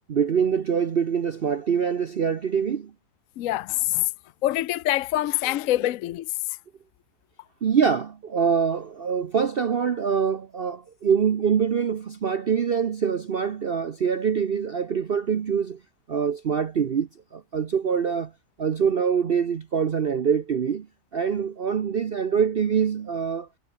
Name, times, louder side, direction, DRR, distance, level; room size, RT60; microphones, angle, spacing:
voice 1, 0.1-2.9 5.5-5.6 5.8-5.9 7.6-15.8 16.1-18.3 18.6-20.9 21.1-23.5, right 7 dB, 45° right, 0.8 m, -24 dB
voice 2, 3.4-4.1 4.4-6.6, left 16 dB, 65° left, 0.9 m, -25 dB
omnidirectional pair, 1.7 m